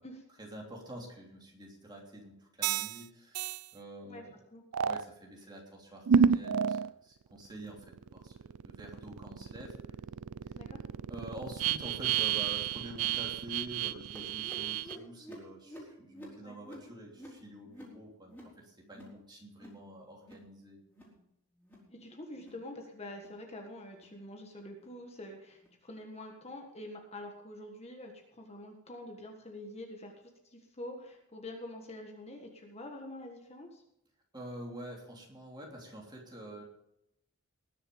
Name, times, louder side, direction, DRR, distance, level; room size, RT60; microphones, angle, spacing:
voice 1, 0.4-4.4 4.8-9.9 11.1-20.8 34.3-36.6, right 1 dB, 20° right, -1 dB, 3.1 m, -47 dB
sound 1, 2.6-3.0 3.3-3.6 4.7-5.0 6.1-6.9 7.4-15.0, right 7 dB, 80° right, 0.4 m, -31 dB
sound 2, 14.2-19.2 19.5-19.8 20.1-20.5 20.8-21.2 21.6-21.9 22.3-22.6 23.1-23.4 23.9-24.2 24.7-24.9 25.6-25.7 26.4-26.5 27.3-27.4, equal, 10° left, 4.0 m, -51 dB
voice 2, 21.9-30.1 30.4-33.8, left 1 dB, 30° left, 2 dB, 1.6 m, -46 dB
20.0 x 7.1 x 5.3 m, 0.81 s
head